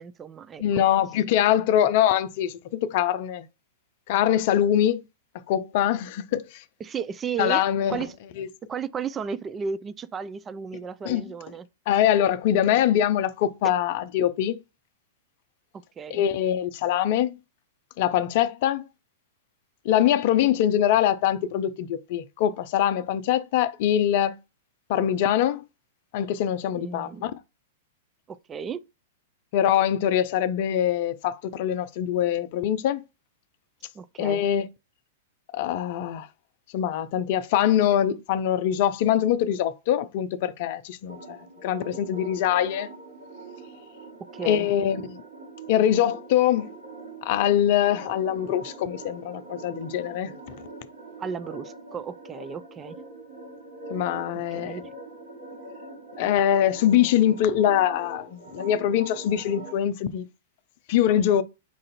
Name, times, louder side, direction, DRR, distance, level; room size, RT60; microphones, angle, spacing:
voice 1, 0.0-0.6 6.8-7.6 7.9-8.1 8.7-11.7 16.0-16.2 26.7-27.4 28.3-28.8 33.9-34.4 44.3-44.7 51.2-53.0 54.5-54.8, right 6 dB, 20° right, 0.4 m, -34 dB
voice 2, 0.6-3.5 4.1-5.0 5.5-6.6 7.4-8.0 8.4-8.5 11.0-11.3 11.9-14.6 16.1-17.3 18.0-18.9 19.8-24.3 24.9-25.6 26.1-27.3 29.5-33.0 34.2-34.7 35.5-36.3 36.7-41.4 41.6-42.9 44.4-45.2 45.7-46.7 47.2-50.6 53.9-54.8 56.2-60.2 60.9-61.4, left 10 dB, 50° left, 0.5 m, -23 dB
sound 1, 41.1-59.7, right 3 dB, 75° right, 2.9 m, -43 dB
4.7 x 2.5 x 4.2 m
figure-of-eight pair, 100°, 0 cm